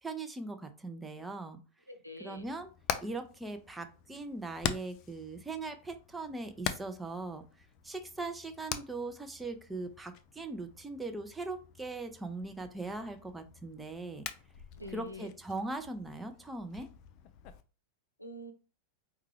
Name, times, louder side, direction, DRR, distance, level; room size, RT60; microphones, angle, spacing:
voice 1, 0.0-1.6 2.2-2.7 3.0-7.4 7.8-14.3 14.9-16.9, right 2 dB, 10° right, 7 dB, 0.6 m, -40 dB
voice 2, 1.9-2.5 14.7-15.3 18.2-18.5, left 1 dB, 90° left, 5 dB, 0.6 m, -45 dB
Hammer, 2.4-17.6, left 9 dB, 40° left, 0.4 m, -44 dB
4.6 x 2.3 x 3.1 m, 0.33 s
figure-of-eight pair, 90°, 0 cm